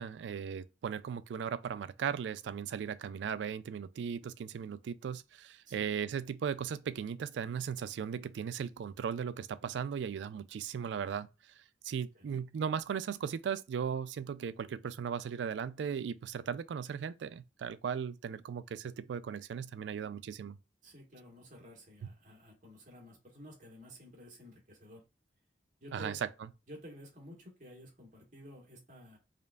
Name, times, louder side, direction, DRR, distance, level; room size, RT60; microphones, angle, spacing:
voice 1, 0.0-11.3 11.8-20.6 25.9-26.2, right 7 dB, 75° right, 0.3 m, -37 dB
voice 2, 20.8-25.0 25.8-26.2 26.7-29.2, equal, 45° right, 1.4 m, -52 dB
5.1 x 2.5 x 2.3 m
head